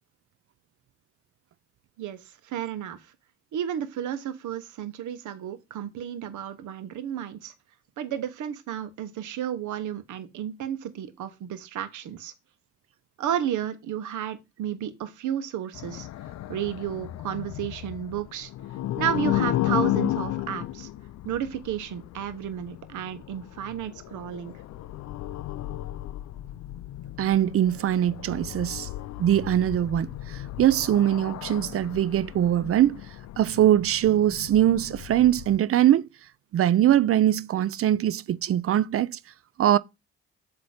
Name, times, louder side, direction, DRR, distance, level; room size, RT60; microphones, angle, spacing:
voice 1, 2.5-3.0 3.5-7.5 8.0-12.3 13.2-16.1 16.5-18.5 19.0-20.9 21.2-24.5, right 9 dB, 75° right, 1.0 m, -32 dB
sound 1, 15.7-35.6, left 15 dB, 60° left, 0.5 m, -34 dB
voice 2, 27.2-28.9 29.2-33.0 33.4-36.1 36.5-39.2 39.6-39.8, right 11 dB, 50° right, 0.4 m, -22 dB
7.8 x 2.9 x 4.9 m
supercardioid pair, 65°, 30 cm